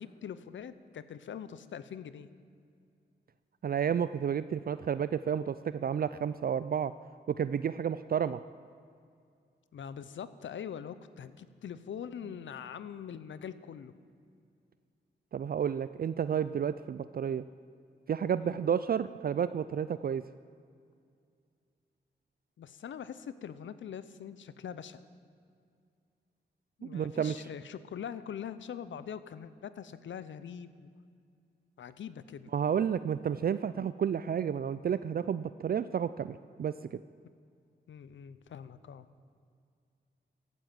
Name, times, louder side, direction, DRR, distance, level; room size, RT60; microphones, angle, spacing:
voice 1, 0.0-2.3 9.7-13.9 18.4-18.6 22.6-25.0 26.8-30.9 31.8-32.5 37.9-39.1, left 8 dB, 85° left, 14 dB, 0.7 m, -43 dB
voice 2, 3.6-6.9 7.3-8.4 15.3-17.4 18.1-20.2 26.8-27.3 32.5-37.0, right 8 dB, 50° right, 14 dB, 0.4 m, -31 dB
15.5 x 12.0 x 7.5 m, 2.3 s
cardioid pair, 65°, 19 cm